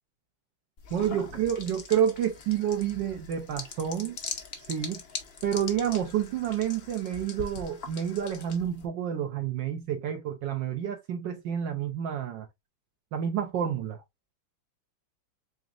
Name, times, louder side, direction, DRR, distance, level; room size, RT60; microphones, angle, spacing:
sound 1, 0.8-8.9, left 5 dB, 70° left, 0.5 m, -42 dB
voice 1, 0.9-4.2 4.6-5.0 5.4-12.5 13.1-14.0, right 9 dB, 70° right, 1.2 m, -29 dB
4.1 x 3.8 x 2.4 m
omnidirectional pair, 2.2 m